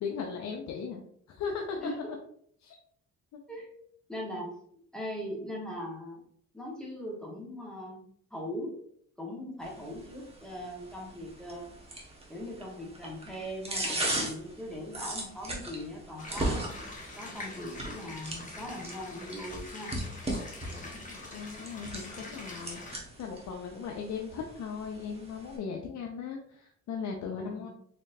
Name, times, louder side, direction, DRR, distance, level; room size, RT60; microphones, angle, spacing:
voice 1, 0.0-1.0 1.3-1.8 2.6-2.8 20.6-27.7, left 6 dB, 70° left, 1 dB, 0.6 m, -38 dB
voice 2, 1.8-2.1 3.5-3.7 4.1-4.5 4.9-6.2 6.5-8.0 8.3-8.8 9.2-11.7 12.3-16.7 17.2-19.9 27.4-27.7, equal, ahead, -3 dB, 1.5 m, -40 dB
sound 1, 9.6-25.6, right 1 dB, 20° right, 1.2 m, -39 dB
sound 2, 16.2-23.0, left 2 dB, 25° left, 1.1 m, -44 dB
4.3 x 3.1 x 2.7 m, 0.64 s
cardioid pair, 90°, 30 cm